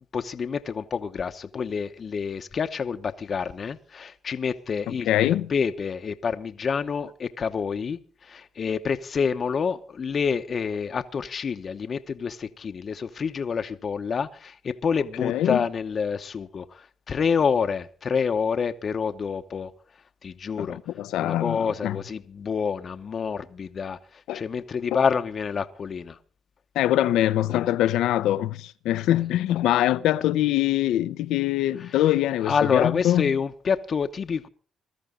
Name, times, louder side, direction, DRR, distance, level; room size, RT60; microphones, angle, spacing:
voice 1, 0.0-19.7 20.2-20.8 21.2-26.2 31.9-32.0 32.4-34.5, left 6 dB, 45° left, 0.9 m, -28 dB
voice 2, 5.1-5.5 15.2-15.6 20.6-22.0 24.3-24.4 26.7-33.3, left 13 dB, 85° left, 0.7 m, -23 dB
21.0 x 13.5 x 3.8 m
cardioid pair, 90°, 0 cm